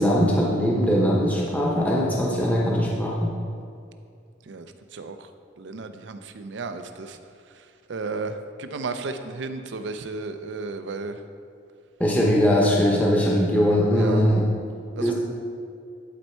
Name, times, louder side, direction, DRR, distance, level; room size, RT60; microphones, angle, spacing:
voice 1, 0.0-3.3 12.0-14.5 15.0-15.1, equal, 10° left, -4 dB, 0.8 m, -21 dB
voice 2, 4.4-5.3 5.6-7.2 7.5-11.2 13.9-14.2 15.0-15.1, right 3 dB, 70° right, 9 dB, 0.5 m, -34 dB
11.0 x 4.4 x 4.4 m, 2.4 s
head